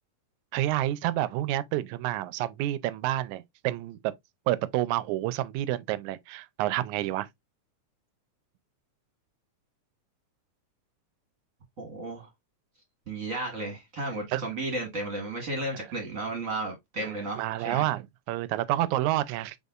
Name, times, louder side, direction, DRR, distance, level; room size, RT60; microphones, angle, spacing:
voice 1, 0.5-4.0 4.5-7.3 14.3-14.4 17.0-19.6, right 14 dB, 80° right, 1.9 m, -29 dB
voice 2, 11.8-12.3 13.1-17.8, right 2 dB, 35° right, 1.4 m, -34 dB
5.4 x 3.9 x 2.4 m
omnidirectional pair, 3.4 m